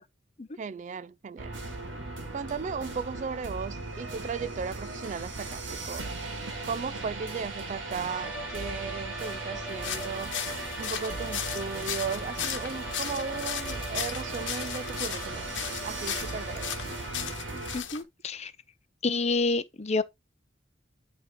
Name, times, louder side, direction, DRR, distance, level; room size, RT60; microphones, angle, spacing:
voice 1, 0.6-1.6 2.3-6.1 6.6-10.4 10.8-16.8, right 5 dB, 40° right, 0.3 m, -36 dB
sound 1, 1.4-17.8, right 2 dB, 85° right, 1.9 m, -37 dB
sound 2, 8.0-17.2, equal, 10° right, 1.3 m, -42 dB
sound 3, 9.7-18.0, left 9 dB, 80° left, 1.1 m, -37 dB
voice 2, 17.7-18.5 19.0-20.0, left 3 dB, 35° left, 0.7 m, -28 dB
10.0 x 3.6 x 3.7 m
head